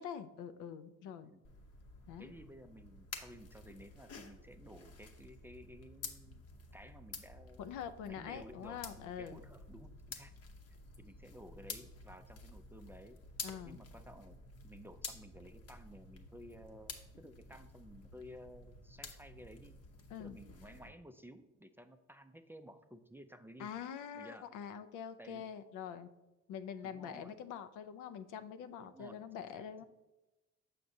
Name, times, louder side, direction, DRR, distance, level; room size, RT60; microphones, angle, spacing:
voice 1, 0.0-1.3 2.1-2.3 7.6-9.4 13.4-13.8 20.1-20.4 23.6-26.1 26.5-29.8, left 8 dB, 90° left, 11 dB, 0.5 m, -45 dB
sound 1, 1.4-20.9, left 4 dB, 55° left, 0.8 m, -51 dB
voice 2, 2.2-6.4 6.7-7.7 8.1-10.3 11.0-13.2 13.6-19.8 20.2-23.7 24.1-24.5 25.2-25.5 26.8-27.4 28.8-29.6, equal, 10° right, 8 dB, 0.3 m, -55 dB
6.3 x 5.8 x 2.6 m, 1.0 s
cardioid pair, 90°, 30 cm